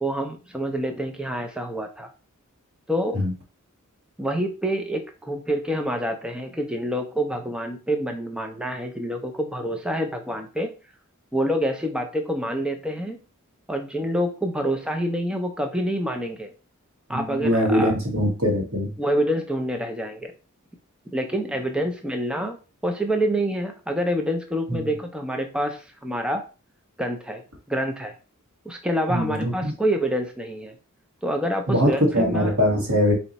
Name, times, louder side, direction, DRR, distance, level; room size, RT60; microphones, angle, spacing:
voice 1, 0.0-2.1 2.9-3.2 4.2-10.7 11.3-13.2 13.7-16.5 17.1-17.9 19.0-20.3 21.1-26.4 27.0-27.4 27.7-28.1 28.7-30.7 31.2-32.6, equal, 5° right, 4 dB, 0.4 m, -27 dB
voice 2, 17.1-18.9 24.7-24.9 29.1-29.5 31.7-33.1, equal, 70° right, 1 dB, 1.6 m, -22 dB
4.3 x 2.8 x 4.0 m, 0.33 s
head